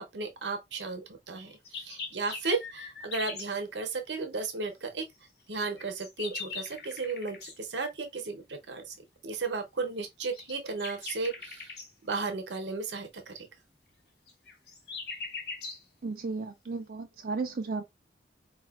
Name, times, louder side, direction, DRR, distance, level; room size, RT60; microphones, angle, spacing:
voice 1, 0.1-5.0 5.5-8.9 9.2-11.7 12.0-13.3, right 4 dB, 85° right, 0.8 m, -34 dB
sound 1, 1.4-3.5 5.5-7.6 10.2-11.9 14.3-15.8, left 4 dB, 60° left, 0.8 m, -41 dB
voice 2, 16.0-17.8, right 4 dB, 55° right, 0.4 m, -34 dB
4.2 x 2.3 x 2.3 m
head